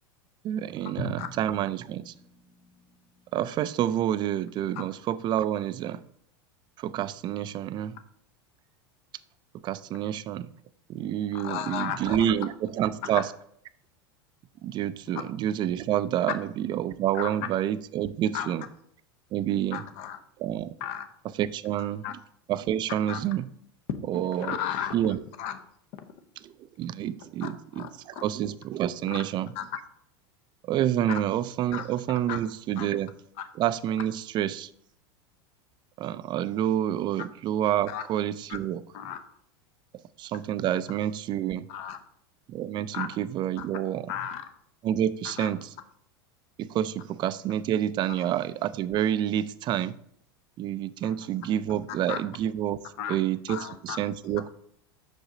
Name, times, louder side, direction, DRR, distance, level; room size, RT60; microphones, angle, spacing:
voice 1, 0.4-2.1 3.3-6.0 6.8-8.0 9.6-10.5 10.9-13.3 14.6-18.6 19.3-19.8 20.4-20.7 21.3-22.2 22.5-23.5 24.1-24.6 24.9-25.2 26.4-29.5 30.7-33.1 33.5-34.7 36.0-38.8 40.2-41.7 42.5-44.3 44.8-45.7 46.6-50.0 50.6-52.8 53.1-54.5, right 11 dB, 35° right, 0.4 m, -28 dB
Drum, 1.0-3.9, equal, 35° left, 1.0 m, -42 dB
voice 2, 11.3-12.2 17.2-17.3 18.3-18.5 19.7-20.2 20.8-21.1 22.0-22.1 23.1-23.2 24.4-24.9 25.4-25.6 27.4-27.9 29.1-29.2 29.6-29.7 31.7-31.9 32.3-32.4 32.8-32.9 37.9-38.0 38.9-39.2 41.7-42.0 42.9-43.1 43.6-43.7 44.1-44.4 45.4-45.5 51.0-51.1 52.1-52.2 53.0-53.2 53.5-54.0, left 9 dB, 55° left, 0.8 m, -34 dB
6.2 x 5.0 x 3.8 m
hypercardioid pair, 110°, 13 cm